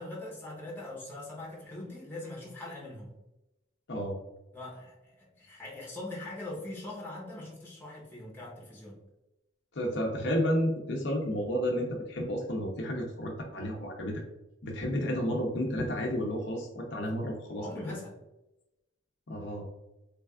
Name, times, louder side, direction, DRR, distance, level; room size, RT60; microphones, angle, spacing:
voice 1, 0.0-3.1 4.5-9.0 17.0-17.1 17.5-18.2, left 2 dB, 10° left, -4 dB, 0.9 m, -42 dB
voice 2, 9.7-14.2 14.6-18.0 19.3-19.7, equal, 60° left, 0 dB, 0.6 m, -31 dB
3.3 x 3.3 x 2.3 m, 0.96 s
head